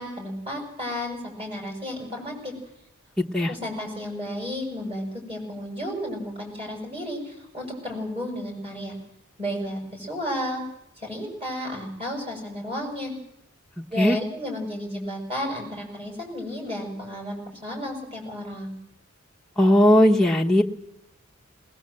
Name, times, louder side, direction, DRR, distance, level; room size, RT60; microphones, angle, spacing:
voice 1, 0.0-2.5 3.5-9.0 9.4-10.6 11.0-13.1 13.9-18.8, equal, 25° right, 1 dB, 6.4 m, -32 dB
voice 2, 19.6-20.6, left 1 dB, ahead, -2 dB, 1.0 m, -17 dB
20.0 x 19.5 x 7.7 m, 0.81 s
head